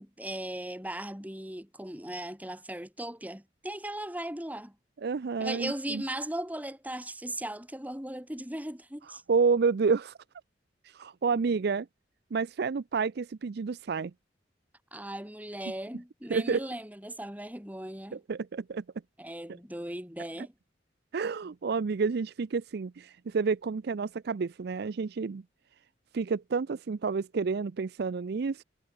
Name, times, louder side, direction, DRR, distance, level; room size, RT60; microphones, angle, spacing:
voice 1, 0.0-4.7 5.4-9.2 14.9-18.2 19.2-20.5, right 1 dB, 10° right, 4.5 m, -38 dB
voice 2, 5.0-6.0 9.3-10.1 10.9-11.9 12.3-14.1 16.3-16.7 18.1-18.8 21.1-25.4 26.1-28.6, right 5 dB, 60° right, 0.4 m, -29 dB
head